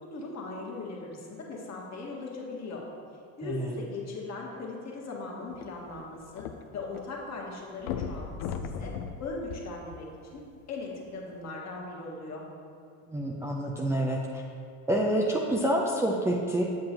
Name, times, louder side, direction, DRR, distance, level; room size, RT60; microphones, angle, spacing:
voice 1, 0.0-2.8 3.4-6.5 6.7-8.9 9.2-10.4 10.7-12.4, left 3 dB, 35° left, -3 dB, 1.7 m, -39 dB
voice 2, 3.4-3.8 13.1-14.4 14.9-16.6, right 1 dB, 5° right, -2 dB, 0.4 m, -27 dB
sound 1, 5.5-7.0 7.3-7.4 7.8-10.4 11.1-11.2, left 6 dB, 65° left, 0.6 m, -37 dB
7.8 x 7.3 x 2.9 m, 2.4 s
supercardioid pair, 95°, 44 cm